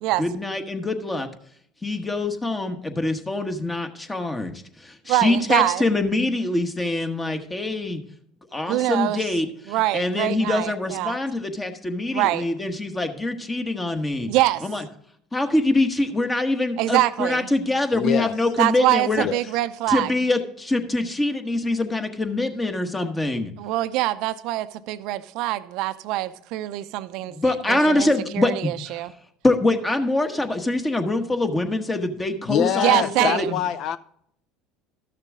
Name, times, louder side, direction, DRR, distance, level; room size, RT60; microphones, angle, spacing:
voice 1, 0.2-1.3 1.8-8.0 8.5-14.3 14.6-14.8 15.3-19.3 19.9-23.5 27.2-29.0 29.4-33.6, left 2 dB, 20° left, 1.1 m, -24 dB
voice 2, 5.1-5.8 8.7-9.2 9.7-11.2 12.1-12.4 14.3-14.6 16.8-17.5 18.6-20.1 23.6-29.1 32.7-33.5, right 16 dB, 65° right, 0.5 m, -24 dB
voice 3, 17.9-18.3 19.2-19.4 32.5-34.0, left 10 dB, 55° left, 0.5 m, -24 dB
12.5 x 6.7 x 3.7 m
hypercardioid pair, 85°, 0 cm